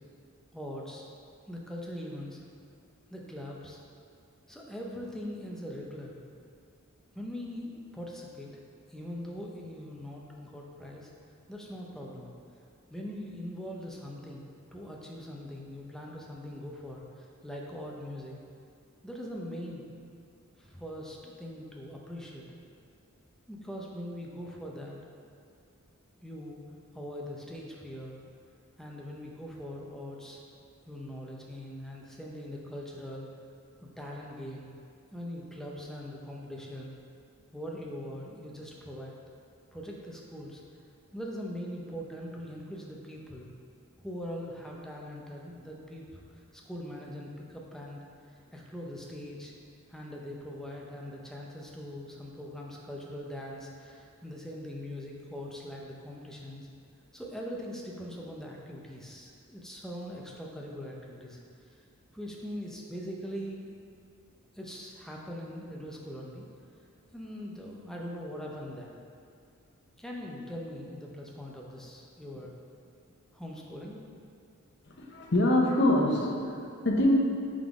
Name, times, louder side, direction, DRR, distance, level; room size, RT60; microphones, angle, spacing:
voice 1, 0.5-1.0 1.5-2.4 3.1-3.8 4.5-6.2 7.1-8.5 8.9-11.1 11.5-12.3 12.9-18.4 19.0-19.9 20.6-22.5 23.5-25.0 26.2-26.6 26.9-28.2 28.8-30.4 30.9-33.3 33.8-34.7 35.1-36.9 37.5-39.1 39.7-40.6 41.1-43.5 44.0-46.2 46.5-48.0 48.5-49.5 49.9-56.7 57.1-61.4 61.7-61.8 62.1-63.7 64.5-66.5 67.1-69.0 70.0-72.5 73.3-74.0, equal, ahead, -2 dB, 0.6 m, -41 dB
voice 2, 74.9-77.1, left 1 dB, 55° left, -1 dB, 0.8 m, -25 dB
5.8 x 3.8 x 4.8 m, 2.4 s
head